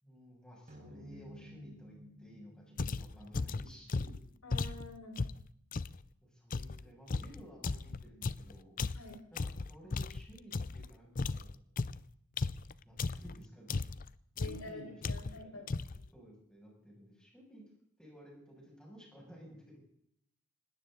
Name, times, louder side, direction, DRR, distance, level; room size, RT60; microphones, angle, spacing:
voice 1, 0.0-4.2 6.2-8.8 9.3-11.5 12.8-13.8 14.3-15.7 16.1-17.7 18.0-19.8, equal, 5° left, -3 dB, 6.8 m, -54 dB
sound 1, 0.7-5.3, equal, 35° right, 5.8 m, -55 dB
sound 2, 2.8-6.0 6.5-10.9 11.2-13.4 13.7-14.1 14.4-14.7 15.0-15.4 15.7-16.1, left 3 dB, 35° left, 0.5 m, -36 dB
voice 2, 4.4-5.2 8.9-9.1 14.4-15.6, left 1 dB, 75° left, 2 dB, 5.1 m, -47 dB
20.0 x 17.5 x 3.9 m, 0.73 s
head